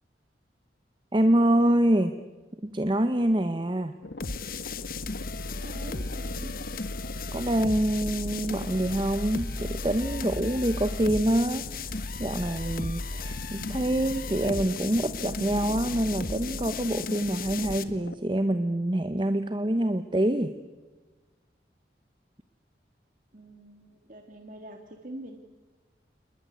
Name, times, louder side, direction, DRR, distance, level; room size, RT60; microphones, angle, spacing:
voice 1, 1.1-2.1 2.6-3.9 7.3-20.5, right 1 dB, 25° right, 10 dB, 0.9 m, -26 dB
sound 1, 4.0-18.2, left 2 dB, 80° left, 1.2 m, -42 dB
sound 2, 4.2-17.8, left 3 dB, 50° left, 1.4 m, -35 dB
voice 2, 5.6-6.5 23.3-25.4, right 1 dB, 45° right, 4 dB, 1.9 m, -44 dB
28.5 x 20.5 x 9.5 m, 1.2 s
head